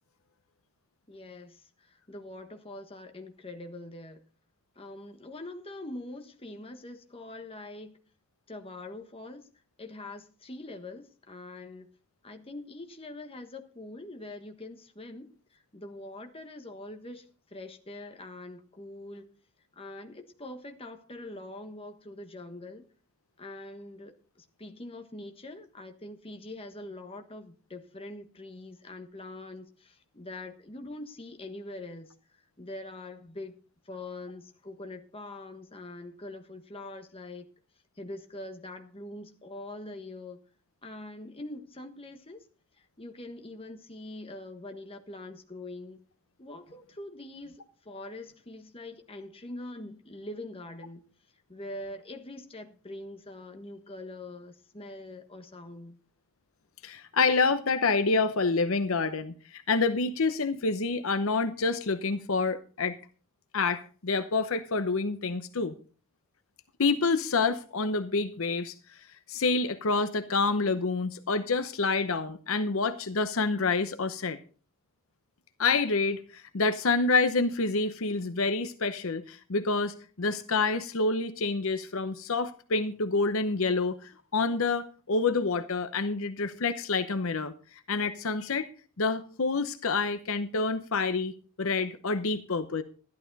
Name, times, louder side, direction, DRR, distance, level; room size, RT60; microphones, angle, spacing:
voice 1, 1.1-4.2 4.7-8.0 8.5-9.5 9.8-11.9 12.2-19.3 19.7-22.9 23.4-33.5 33.8-37.4 38.0-40.4 40.8-42.4 42.8-46.0 46.4-51.0 51.5-56.0, left 2 dB, 25° left, 1.4 m, -43 dB
voice 2, 56.8-63.0 63.5-65.7 66.8-69.0 69.3-74.4 75.6-88.7 89.0-91.3 91.6-92.8, left 4 dB, 65° left, 0.8 m, -28 dB
13.0 x 11.5 x 4.0 m
head